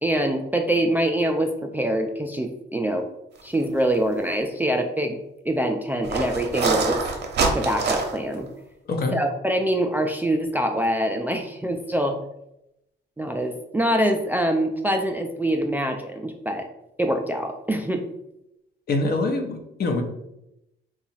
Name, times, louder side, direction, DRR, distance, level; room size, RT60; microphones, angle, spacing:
voice 1, 0.0-3.0 3.4-5.2 5.5-7.0 7.5-8.5 9.1-12.2 13.2-16.7 17.0-18.0, right 1 dB, 10° right, 3 dB, 0.3 m, -24 dB
sound 1, 3.8-4.0 4.3-4.4 6.0-8.3, right 4 dB, 60° right, 0.7 m, -25 dB
voice 2, 18.9-20.0, left 2 dB, 50° left, 3 dB, 0.7 m, -24 dB
2.8 x 2.3 x 4.1 m, 0.84 s
cardioid pair, 90°, 20 cm